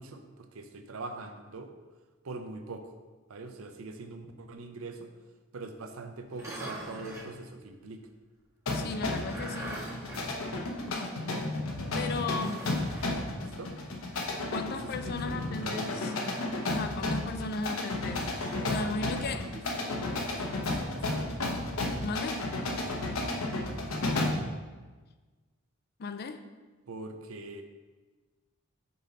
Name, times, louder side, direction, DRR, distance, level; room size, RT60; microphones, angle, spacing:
voice 1, 0.0-1.7 2.2-2.9 3.3-5.1 5.5-8.0 13.3-13.7 14.7-16.1 18.6-21.4 26.9-27.6, right 3 dB, 85° right, 6 dB, 0.6 m, -43 dB
sound 1, 6.3-7.4 8.9-11.1 11.4-11.5 12.3-13.2 15.7-16.7 18.0-18.7, right 1 dB, 15° right, 1.5 m, -43 dB
sound 2, 8.7-24.5, left 2 dB, 85° left, 0.9 m, -33 dB
voice 2, 8.7-9.8 11.9-12.6 14.5-16.1 16.7-18.3 18.7-19.5 22.0-22.4 26.0-26.4, left 3 dB, 50° left, 9 dB, 0.4 m, -35 dB
5.4 x 4.0 x 5.1 m, 1.3 s
head